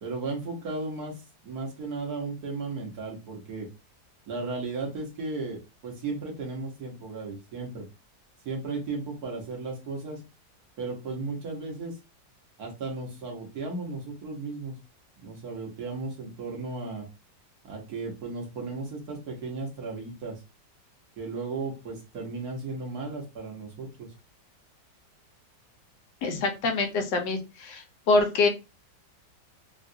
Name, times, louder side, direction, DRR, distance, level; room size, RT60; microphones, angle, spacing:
voice 1, 0.0-3.7 4.3-7.9 8.4-10.2 10.8-12.0 12.6-14.8 15.2-17.1 17.6-20.4 21.2-24.1, right 3 dB, 60° right, -1 dB, 1.5 m, -35 dB
voice 2, 26.2-28.5, left 3 dB, 90° left, 5 dB, 1.3 m, -25 dB
3.7 x 2.4 x 2.6 m, 0.27 s
omnidirectional pair, 1.9 m